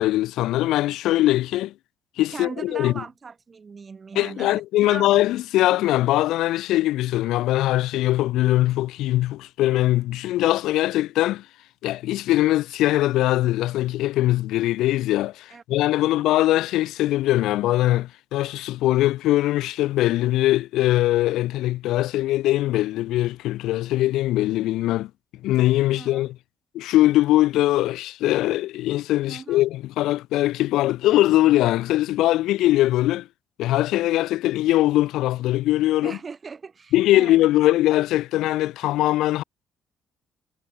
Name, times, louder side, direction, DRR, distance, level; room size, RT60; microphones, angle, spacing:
voice 1, 0.0-1.7 2.2-2.9 4.1-11.4 11.8-25.1 25.4-26.3 26.7-33.3 33.6-36.2 36.9-39.4, left 15 dB, 85° left, 1.5 m, -21 dB
voice 2, 2.3-5.1 15.5-15.6 16.0-16.3 25.9-26.3 29.3-29.6 36.0-37.4, right 5 dB, 25° right, 2.6 m, -39 dB
cardioid pair, 170°, 0 cm